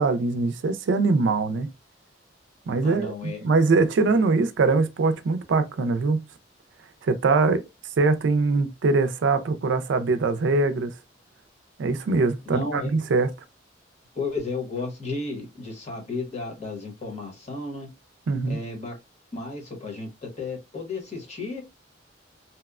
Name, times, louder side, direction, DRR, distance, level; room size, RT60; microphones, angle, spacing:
voice 1, 0.0-1.7 2.7-6.2 7.0-7.6 8.0-10.9 11.8-13.3 18.3-18.6, right 3 dB, 75° right, 0.4 m, -22 dB
voice 2, 2.8-3.4 12.4-12.9 14.1-17.9 18.5-18.9 19.3-21.6, left 3 dB, 40° left, 0.9 m, -33 dB
2.8 x 2.1 x 2.3 m
head